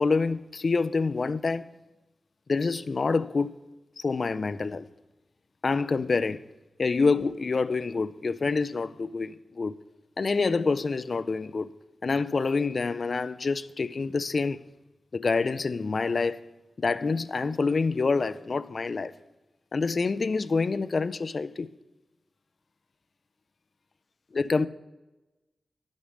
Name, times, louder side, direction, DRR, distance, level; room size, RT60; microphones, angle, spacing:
voice 1, 0.0-1.7 2.5-3.6 4.0-4.9 5.6-6.4 6.8-9.8 10.2-11.7 12.0-14.7 15.1-16.5 16.8-19.2 19.7-21.7 24.3-24.7, left 4 dB, 50° left, 0.3 m, -27 dB
11.0 x 5.3 x 6.2 m
wide cardioid pair, 125°, 0 cm